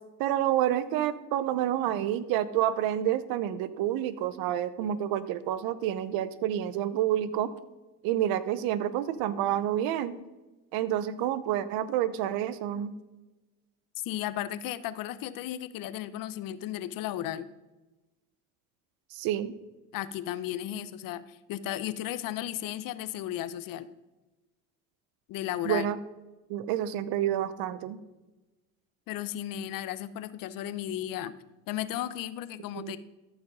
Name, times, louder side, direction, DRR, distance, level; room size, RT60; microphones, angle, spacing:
voice 1, 0.2-7.5 8.0-10.1 10.7-12.9 19.1-19.5 25.6-26.0 26.5-28.0 32.7-32.9, right 11 dB, 75° right, 15 dB, 0.7 m, -28 dB
voice 2, 14.0-17.5 19.9-23.9 25.3-25.9 29.1-31.3 31.7-33.0, left 12 dB, 65° left, 15 dB, 0.7 m, -34 dB
13.5 x 4.9 x 5.3 m, 1.1 s
supercardioid pair, 85°, 36 cm